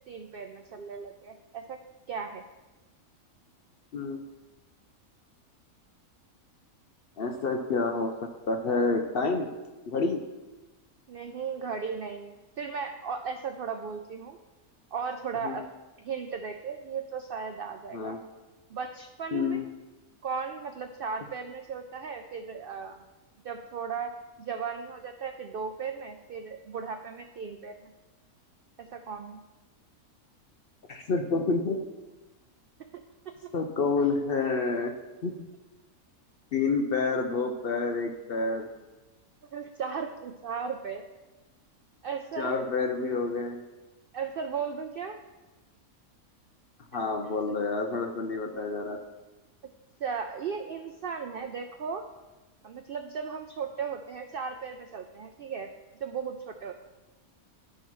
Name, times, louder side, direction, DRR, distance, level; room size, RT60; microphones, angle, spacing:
voice 1, 0.1-1.8 2.1-2.4 11.1-14.4 14.9-15.6 16.0-18.2 18.7-19.6 20.2-23.0 23.4-24.1 24.4-27.9 28.8-29.4 32.9-33.0 33.4-33.5 39.5-41.0 42.0-42.6 44.1-45.2 47.2-47.5 50.0-52.0 52.6-55.7 56.0-56.7, right 6 dB, 85° right, 6 dB, 0.5 m, -36 dB
voice 2, 7.2-8.1 8.5-9.5 9.9-10.2 15.4-15.6 17.9-18.2 19.3-19.6 30.9-31.8 33.5-34.9 35.2-35.5 36.5-38.7 42.4-43.6 46.9-49.0, left 4 dB, 60° left, 4 dB, 0.6 m, -28 dB
12.0 x 5.6 x 3.1 m, 1.2 s
omnidirectional pair, 1.5 m